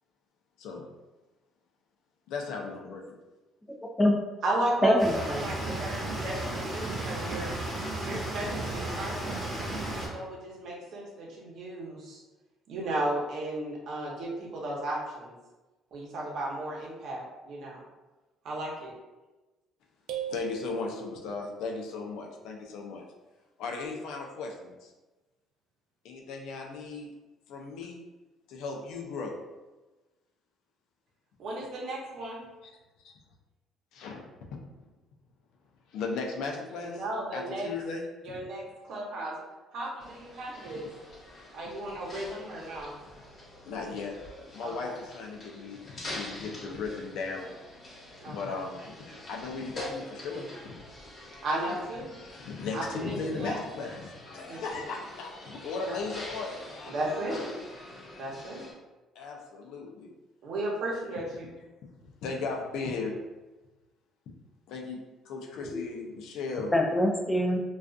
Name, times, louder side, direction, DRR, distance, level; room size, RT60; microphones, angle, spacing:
voice 1, 2.3-3.2 5.6-6.0 20.3-23.0 23.6-24.9 26.0-27.1 27.5-28.0 28.5-29.4 33.0-33.2 33.9-34.3 35.9-37.0 37.3-38.4 40.7-40.8 43.7-44.2 44.5-47.5 48.3-48.9 49.3-50.5 51.7-51.8 52.4-57.5 59.2-60.1 62.2-63.1 64.7-65.0 65.3-66.8, left 4 dB, 80° left, 1 dB, 0.4 m, -37 dB
voice 2, 3.7-4.2 4.8-5.5 65.7-65.8 66.7-67.6, left 1 dB, 10° left, 2 dB, 0.4 m, -25 dB
voice 3, 4.4-7.5 8.0-9.4 10.1-12.2 12.7-15.3 15.9-17.8 18.4-18.9 31.4-32.4 36.8-37.7 38.2-39.4 39.7-40.9 41.5-43.0 44.6-44.9 48.2-48.6 51.4-52.1 52.7-53.6 54.5-54.8 56.9-57.5 58.2-58.7 60.4-61.5, right 1 dB, 65° right, -3 dB, 0.7 m, -34 dB
sound 1, 5.0-10.1, right 2 dB, 15° right, 0.9 m, -34 dB
sound 2, 20.1-21.6, right 6 dB, 80° right, 0.3 m, -38 dB
sound 3, 40.0-58.7, left 1 dB, 40° left, 0.9 m, -45 dB
2.5 x 2.3 x 2.3 m, 1.1 s
cardioid pair, 95°, 0 cm